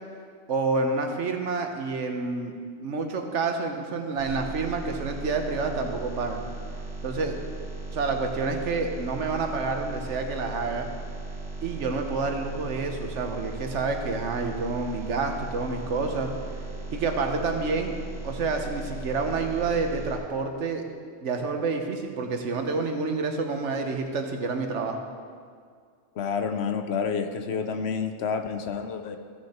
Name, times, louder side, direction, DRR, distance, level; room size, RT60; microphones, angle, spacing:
voice 1, 0.5-2.5 2.8-6.5 7.0-7.4 7.9-10.9 11.6-16.3 16.9-17.9 18.2-20.8 21.2-25.0, right 4 dB, 80° right, 4 dB, 1.3 m, -28 dB
sound 1, 4.2-20.2, right 3 dB, 65° right, 2.6 m, -37 dB
voice 2, 26.2-29.2, left 6 dB, 70° left, 8 dB, 0.9 m, -29 dB
15.0 x 6.3 x 4.3 m, 2.1 s
omnidirectional pair, 1.2 m